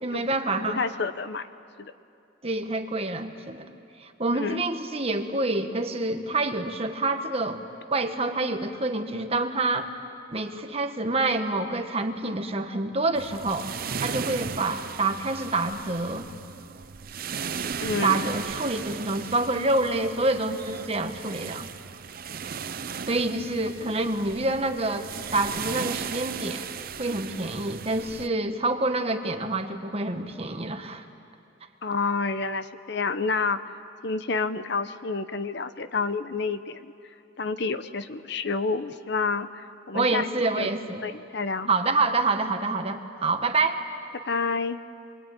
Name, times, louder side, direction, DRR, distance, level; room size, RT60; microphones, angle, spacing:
voice 1, 0.0-0.8 2.4-3.7 4.0-7.6 7.9-9.9 10.3-13.7 14.0-16.3 18.0-21.7 23.1-25.1 25.3-26.7 27.0-31.0 39.9-41.0 41.7-43.8, right 2 dB, 30° right, 6 dB, 1.5 m, -27 dB
voice 2, 0.7-1.4 1.8-1.9 4.3-4.6 17.8-18.3 23.8-23.9 31.8-33.6 34.0-36.9 37.4-40.3 40.6-40.7 41.0-41.7 44.2-44.8, left 4 dB, 60° left, 11 dB, 0.9 m, -29 dB
sound 1, 13.1-28.3, right 6 dB, 50° right, 0.7 m, -36 dB
28.0 x 23.0 x 9.2 m, 2.5 s
head